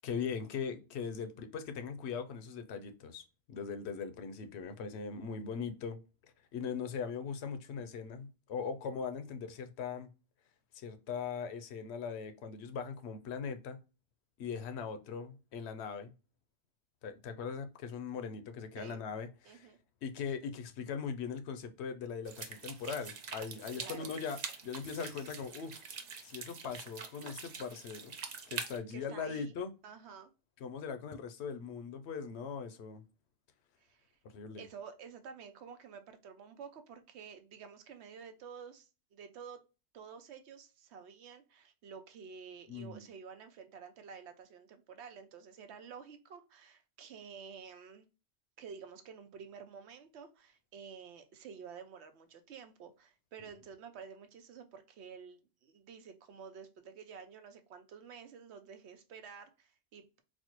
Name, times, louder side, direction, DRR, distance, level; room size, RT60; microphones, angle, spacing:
voice 1, 0.0-6.0 6.5-10.1 10.7-13.8 14.4-16.1 17.0-19.7 20.0-25.8 26.2-28.1 28.5-29.7 30.6-33.0 34.2-34.6 42.7-43.1, left 6 dB, 80° left, 0.9 m, -40 dB
voice 2, 19.4-19.8 23.8-24.1 28.9-29.5 29.8-30.3 33.8-34.0 34.6-39.6 39.9-48.0 48.6-60.2, right 6 dB, 85° right, 0.9 m, -50 dB
sound 1, 22.3-28.8, right 5 dB, 50° right, 0.6 m, -45 dB
4.2 x 2.1 x 2.9 m
omnidirectional pair, 1.1 m